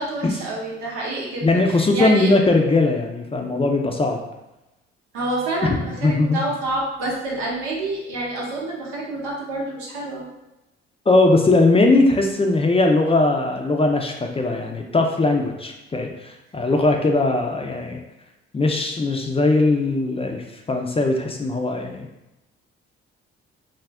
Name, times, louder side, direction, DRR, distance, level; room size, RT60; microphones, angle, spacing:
voice 1, 0.0-2.3 5.1-10.3, right 2 dB, 85° right, -4 dB, 0.7 m, -28 dB
voice 2, 1.4-4.2 5.6-6.4 11.1-18.0 18.5-22.1, left 2 dB, 20° left, 3 dB, 0.4 m, -20 dB
2.4 x 2.0 x 3.3 m, 0.97 s
hypercardioid pair, 45°, 30 cm